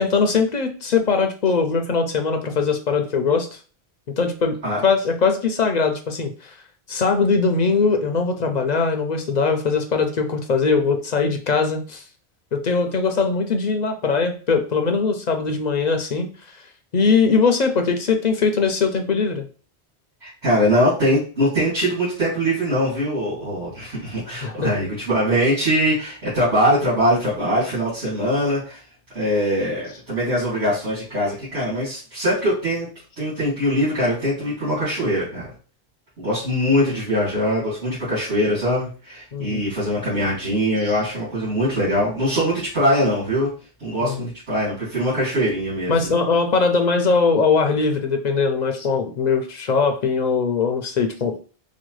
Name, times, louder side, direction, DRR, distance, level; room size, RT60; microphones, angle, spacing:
voice 1, 0.0-3.6 4.2-4.5 4.8-6.5 6.9-12.0 12.5-16.3 16.9-19.5 24.4-24.7 39.3-39.6 44.0-44.3 45.9-51.4, left 4 dB, 55° left, 5 dB, 0.5 m, -21 dB
voice 2, 20.2-28.8 29.1-32.9 33.2-35.5 36.2-43.5 43.8-46.1, equal, 85° right, -11 dB, 2.6 m, -22 dB
4.9 x 2.2 x 3.1 m, 0.38 s
omnidirectional pair, 1.1 m